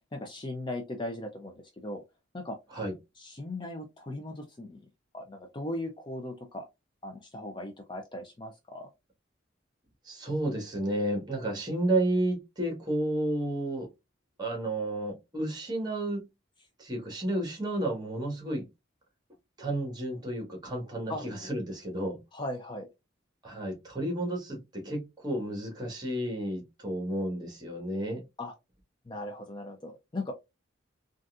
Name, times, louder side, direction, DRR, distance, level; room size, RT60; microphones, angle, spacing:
voice 1, 0.1-2.0 2.3-2.6 3.2-4.9 5.1-6.6 7.0-8.9 21.1-21.3 22.3-22.9 28.4-28.5 29.0-30.3, left 1 dB, 25° left, 0.5 m, -38 dB
voice 2, 10.0-13.9 14.4-16.2 16.8-18.6 19.6-22.2 23.4-28.2, right 1 dB, 20° right, 1.3 m, -31 dB
3.9 x 2.5 x 2.4 m
head